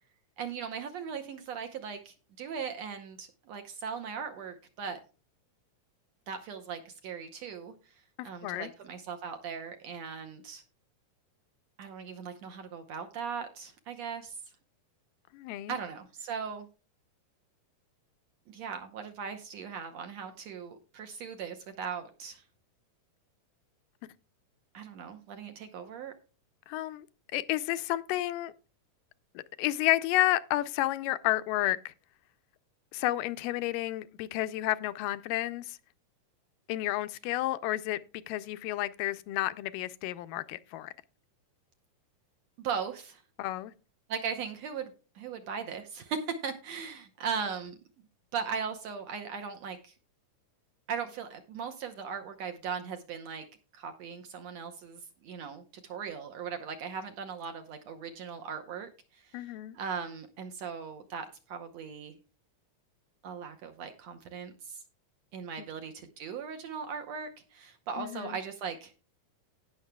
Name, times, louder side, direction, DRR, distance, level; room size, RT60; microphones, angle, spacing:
voice 1, 0.4-5.0 6.3-10.6 11.8-14.4 15.7-16.7 18.5-22.4 24.7-26.1 42.6-43.2 44.1-47.8 48.3-49.9 50.9-53.5 53.7-62.2 63.2-64.8 65.3-68.9, right 6 dB, 70° right, 1.8 m, -39 dB
voice 2, 8.2-8.7 15.3-15.8 26.7-27.1 27.3-28.5 29.4-31.9 32.9-35.8 36.7-38.0 38.3-40.9 43.4-43.7 59.3-59.8 65.6-65.7 68.0-68.4, left 16 dB, 85° left, 2.2 m, -31 dB
17.5 x 6.5 x 2.3 m
omnidirectional pair, 3.9 m